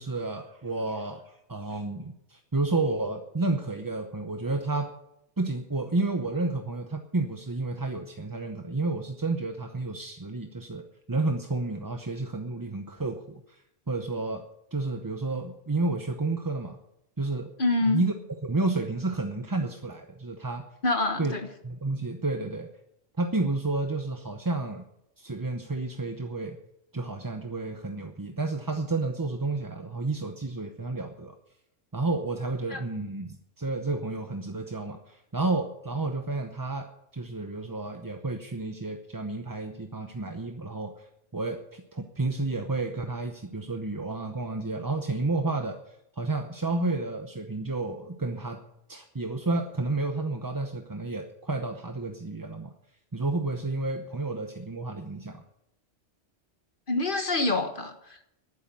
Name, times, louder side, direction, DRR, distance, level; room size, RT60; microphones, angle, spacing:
voice 1, 0.0-4.9 5.4-14.4 14.7-16.8 17.2-17.5 17.9-18.1 18.4-20.6 21.2-21.3 21.6-22.7 23.2-24.8 25.2-26.6 26.9-31.3 31.9-41.1 41.3-45.8 46.2-48.6 48.9-52.7 53.1-55.4, right 3 dB, 20° right, 5 dB, 0.8 m, -31 dB
voice 2, 17.6-18.0 20.8-21.5 32.7-32.8 56.9-57.9, left 2 dB, 50° left, 6 dB, 1.5 m, -26 dB
11.5 x 10.0 x 9.1 m, 0.80 s
omnidirectional pair, 1.2 m